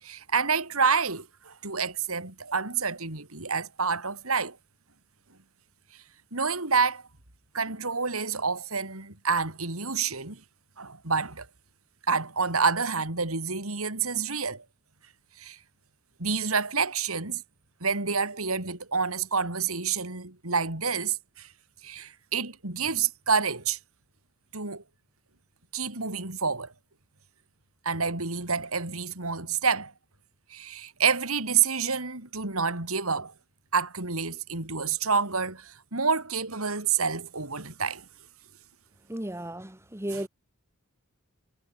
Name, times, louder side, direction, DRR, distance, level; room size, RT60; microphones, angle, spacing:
voice 1, 0.0-4.6 6.3-7.0 7.5-10.4 10.8-11.5 12.1-14.6 15.4-15.6 16.2-17.4 17.8-21.5 21.8-23.8 24.5-24.8 25.7-26.7 27.8-29.9 30.5-33.3 33.7-38.0 40.1-40.3, right 5 dB, 85° right, 4.4 m, -28 dB
voice 2, 39.1-40.3, right 1 dB, 10° right, 2.0 m, -34 dB
head